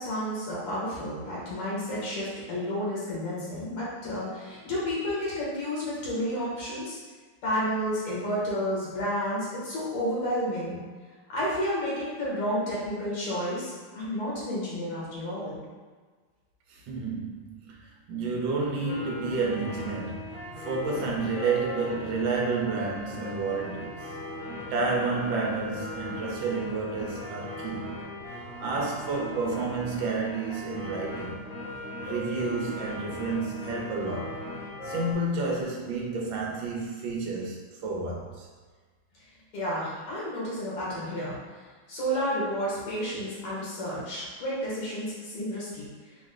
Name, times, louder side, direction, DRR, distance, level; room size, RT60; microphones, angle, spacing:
voice 1, 0.0-7.0 7.4-10.8 11.3-15.6 39.5-41.4 41.9-45.9, equal, 85° left, -7 dB, 2.3 m, -31 dB
voice 2, 16.7-17.8 18.1-24.2 24.7-27.9 28.6-31.4 32.0-34.4 34.8-38.5, right 3 dB, 70° right, -2 dB, 1.4 m, -30 dB
sound 1, 18.8-35.1, left 1 dB, 50° right, 1.0 m, -38 dB
5.0 x 2.1 x 3.7 m, 1.4 s
omnidirectional pair, 2.4 m